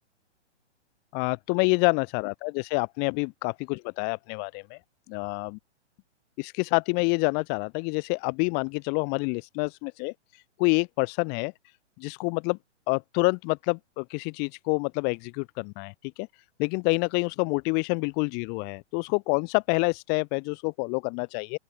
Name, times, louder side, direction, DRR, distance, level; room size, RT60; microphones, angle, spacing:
voice 1, 1.1-4.8 5.1-5.6 6.4-11.5 12.0-12.6 12.9-16.3 16.6-21.6, left 36 dB, 30° left, 1.8 m, -27 dB
open air
hypercardioid pair, 150°, 36 cm